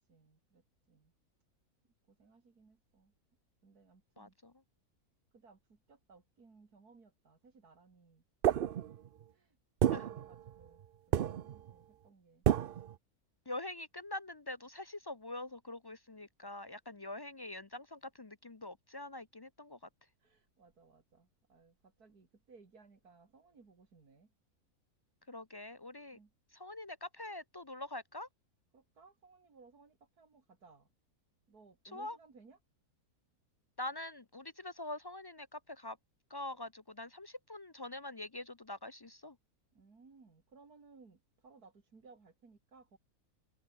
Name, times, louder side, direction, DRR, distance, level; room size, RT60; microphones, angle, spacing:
voice 1, 0.0-1.1 2.1-3.1 3.6-4.3 5.3-8.6 9.3-9.6 9.9-10.8 11.2-12.5 20.2-24.3 26.1-26.3 28.7-30.9 31.5-32.6 39.7-43.0, right 4 dB, 90° right, 3.5 m, -62 dB
voice 2, 4.2-4.5 9.9-10.1 13.5-19.8 25.3-26.2 26.5-28.3 31.9-32.2 33.8-36.0 36.3-39.4, left 2 dB, 35° left, 0.4 m, -44 dB
sound 1, 8.4-9.2 9.8-10.9 11.1-11.7 12.5-13.0, right 10 dB, 60° right, 0.6 m, -31 dB
omnidirectional pair, 1.6 m